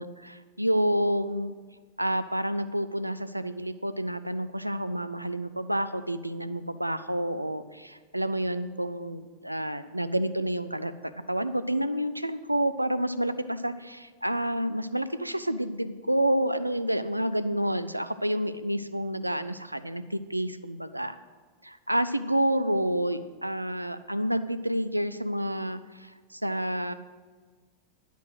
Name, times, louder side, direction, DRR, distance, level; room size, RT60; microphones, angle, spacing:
voice 1, 0.0-1.5 2.0-10.9 11.3-21.2 21.6-26.9, right 1 dB, 90° right, 13 dB, 0.5 m, -29 dB
11.0 x 8.2 x 6.2 m, 1.5 s
figure-of-eight pair, 90°, 0 cm